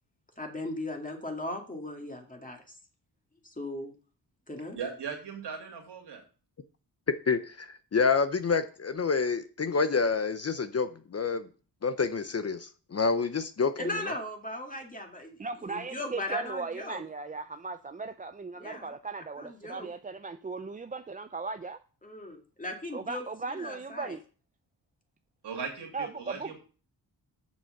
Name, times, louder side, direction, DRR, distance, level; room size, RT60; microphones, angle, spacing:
voice 1, 0.4-2.8 3.4-3.9 4.5-4.8 13.8-15.4 15.6-17.0 18.6-18.9 19.4-19.9 22.0-24.2, left 1 dB, 20° left, 2 dB, 2.3 m, -38 dB
voice 2, 4.7-6.2 25.4-26.6, right 6 dB, 75° right, 2 dB, 2.7 m, -38 dB
voice 3, 7.1-11.5 11.8-13.7, left 5 dB, 35° left, 11 dB, 0.7 m, -28 dB
voice 4, 15.4-21.8 22.9-24.2 25.9-26.6, right 4 dB, 20° right, 9 dB, 0.4 m, -37 dB
6.9 x 6.3 x 6.5 m, 0.38 s
cardioid pair, 85°, 41 cm